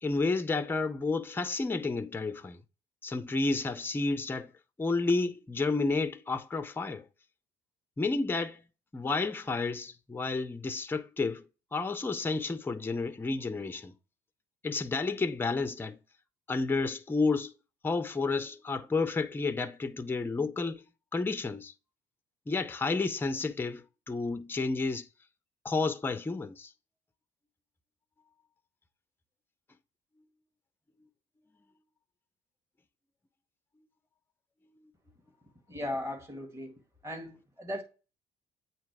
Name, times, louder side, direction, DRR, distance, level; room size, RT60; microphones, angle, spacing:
voice 1, 0.0-2.6 3.0-4.5 4.8-7.1 8.0-8.6 8.9-13.9 14.6-16.0 16.5-17.5 17.8-20.8 21.1-21.7 22.5-25.1 25.6-26.7, left 3 dB, 10° left, 0.5 m, -31 dB
voice 2, 35.7-36.7 37.0-37.8, left 1 dB, 15° right, 1.9 m, -37 dB
8.4 x 2.9 x 4.7 m
cardioid pair, 110°, 17 cm